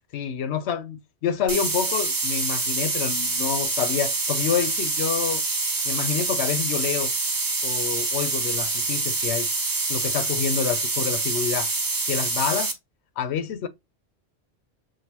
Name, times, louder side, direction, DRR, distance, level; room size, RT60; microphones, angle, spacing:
voice 1, 0.1-5.4 5.8-7.1 7.6-9.5 9.9-11.7 12.1-12.7 13.2-13.7, left 7 dB, 90° left, 0.9 m, -28 dB
sound 1, 1.5-12.7, right 3 dB, 30° right, 0.4 m, -26 dB
6.2 x 2.5 x 2.8 m
omnidirectional pair, 1.1 m